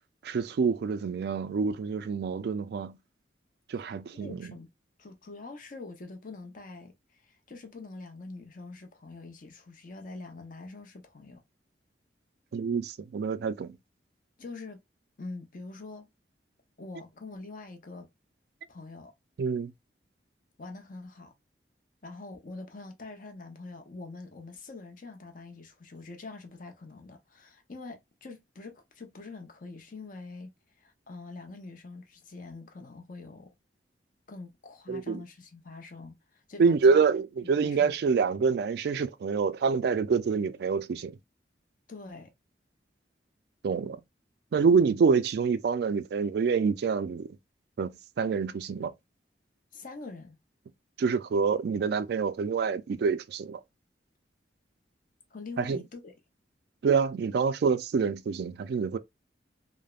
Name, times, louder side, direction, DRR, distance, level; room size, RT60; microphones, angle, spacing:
voice 1, 0.2-2.9 3.7-4.5 12.5-13.7 19.4-19.7 34.9-35.2 36.6-41.1 43.6-44.0 44.5-47.3 47.8-48.9 51.0-53.6 55.6-55.8 56.8-59.0, right 5 dB, 60° right, 0.3 m, -26 dB
voice 2, 4.2-4.7 5.0-11.4 14.4-14.8 15.2-16.1 16.8-18.1 18.7-19.1 20.6-21.3 22.0-30.5 30.8-33.5 34.3-37.0 37.4-37.9 41.9-42.3 49.7-50.4 55.3-56.1, left 3 dB, 50° left, 0.7 m, -44 dB
3.3 x 2.0 x 2.3 m
head